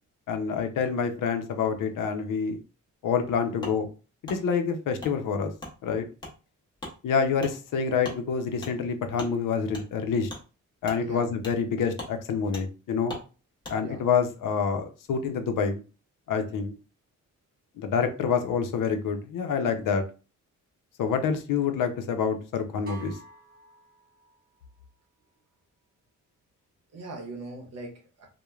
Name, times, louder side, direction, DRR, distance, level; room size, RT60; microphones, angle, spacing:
voice 1, 0.3-2.6 3.0-3.9 4.2-5.5 5.8-6.1 7.0-10.3 10.8-13.2 13.7-15.8 16.3-16.7 17.8-20.0 21.0-23.2, left 6 dB, 85° left, 0.6 m, -27 dB
Wood, 3.6-3.8 4.2-4.4 5.0-5.1 5.6-5.7 6.2-6.3 6.8-6.9 7.4-7.5 8.0-8.2 8.6-8.7 9.2-9.3 9.7-9.8 10.3-10.4 10.8-11.0 11.4-11.6 11.9-12.1 12.5-12.6 13.1-13.2 13.6-13.8, left 1 dB, 15° left, 0.7 m, -39 dB
voice 2, 11.0-11.3 13.8-14.0 26.9-28.3, right 2 dB, 55° right, 0.8 m, -40 dB
sound 1, 22.9-24.6, right 5 dB, 30° right, 0.9 m, -49 dB
3.1 x 2.1 x 2.3 m
wide cardioid pair, 170°, 31 cm